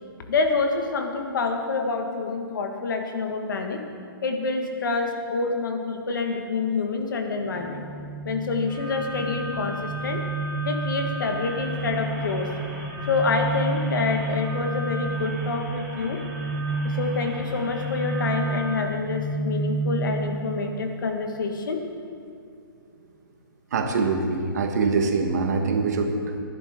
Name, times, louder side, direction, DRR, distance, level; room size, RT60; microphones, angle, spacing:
voice 1, 0.3-3.8 4.2-7.8 8.3-10.2 10.6-12.5 13.1-16.2 16.8-21.8, left 4 dB, 60° left, 4 dB, 1.7 m, -27 dB
sound 1, 7.5-20.3, right 2 dB, 30° right, 1.5 m, -30 dB
sound 2, 8.7-18.7, equal, 5° left, 3.9 m, -38 dB
voice 2, 23.7-26.4, right 4 dB, 45° right, 4 dB, 1.4 m, -24 dB
19.5 x 11.0 x 3.8 m, 2.2 s
hypercardioid pair, 170°, 12 cm